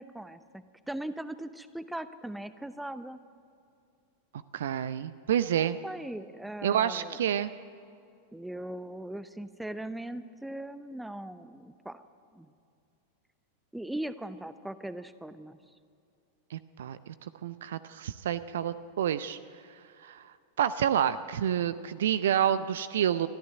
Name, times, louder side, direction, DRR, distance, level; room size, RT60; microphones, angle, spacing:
voice 1, 0.0-3.2 5.6-7.2 8.3-12.0 12.3-12.5 13.7-15.6, right 1 dB, 5° right, 13 dB, 0.8 m, -39 dB
voice 2, 4.5-5.8 6.6-7.5 16.5-17.1 17.4-19.4 20.0-20.3 20.6-23.3, right 10 dB, 60° right, 14 dB, 0.6 m, -28 dB
23.5 x 14.0 x 9.4 m, 2.4 s
figure-of-eight pair, 90°, 0 cm